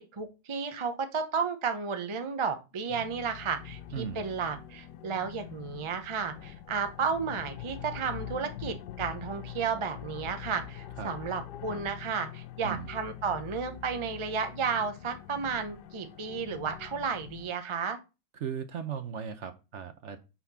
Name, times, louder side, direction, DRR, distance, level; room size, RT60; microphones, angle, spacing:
voice 1, 0.0-18.0, right 5 dB, 40° right, 7 dB, 0.4 m, -33 dB
sound 1, 2.9-17.5, left 10 dB, 90° left, 1.2 m, -44 dB
voice 2, 3.9-4.2 11.0-11.1 12.6-12.9 18.3-20.2, right 7 dB, 60° right, 9 dB, 0.9 m, -37 dB
6.0 x 4.3 x 5.5 m, 0.29 s
omnidirectional pair, 1.7 m